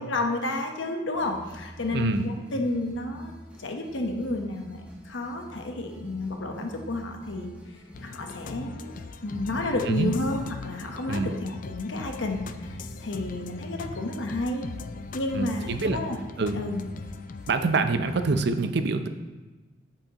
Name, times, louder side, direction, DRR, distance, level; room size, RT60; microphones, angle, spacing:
voice 1, 0.0-3.3 3.6-7.5 8.0-9.0 9.2-14.6 15.1-16.2 16.5-16.8, left 2 dB, 80° left, 3 dB, 1.0 m, -31 dB
sound 1, 1.1-18.5, equal, 5° right, 1.3 m, -46 dB
voice 2, 1.9-2.3 9.9-10.1 11.1-11.3 15.3-16.0 16.4-16.6 17.5-19.1, right 3 dB, 60° right, 8 dB, 0.6 m, -25 dB
sound 2, 7.9-17.6, left 4 dB, 45° left, 0.4 m, -40 dB
8.7 x 7.8 x 2.9 m, 1.2 s
head